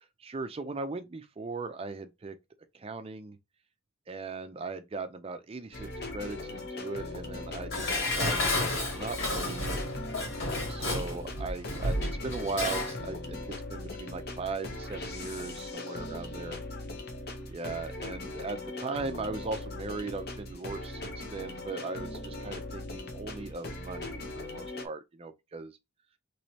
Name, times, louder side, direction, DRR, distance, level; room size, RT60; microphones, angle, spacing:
voice 1, 0.2-2.4 2.7-3.4 4.1-9.8 10.7-16.6 17.5-25.8, right 3 dB, 30° right, 0.4 m, -38 dB
sound 1, 5.7-24.9, left 2 dB, 50° left, 0.7 m, -40 dB
Dishes pots and pans, 7.7-13.0 13.3-13.4, left 1 dB, 65° left, 2.1 m, -31 dB
3.1 x 3.0 x 2.8 m
head